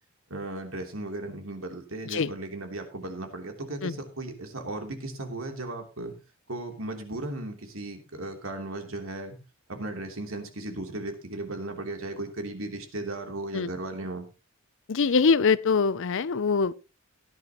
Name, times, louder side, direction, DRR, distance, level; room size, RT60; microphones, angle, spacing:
voice 1, 0.3-6.1 6.5-9.4 9.7-14.3, right 2 dB, 70° right, 3.3 m, -36 dB
voice 2, 14.9-16.7, left 5 dB, 60° left, 0.6 m, -23 dB
17.0 x 10.5 x 3.0 m
head